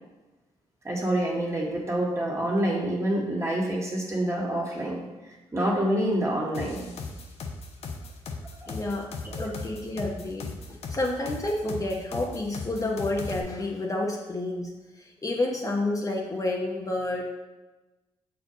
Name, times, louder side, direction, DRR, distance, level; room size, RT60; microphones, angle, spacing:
voice 1, 0.8-5.0 5.5-7.0 8.6-8.8 9.2-9.5, right 1 dB, 25° right, -3 dB, 1.9 m, -27 dB
sound 1, 6.5-13.4, left 4 dB, 65° left, 0.9 m, -37 dB
voice 2, 8.7-9.1 9.4-17.2, left 2 dB, 30° left, -1 dB, 0.9 m, -30 dB
6.5 x 4.5 x 4.0 m, 1.1 s
cardioid pair, 80°, 12 cm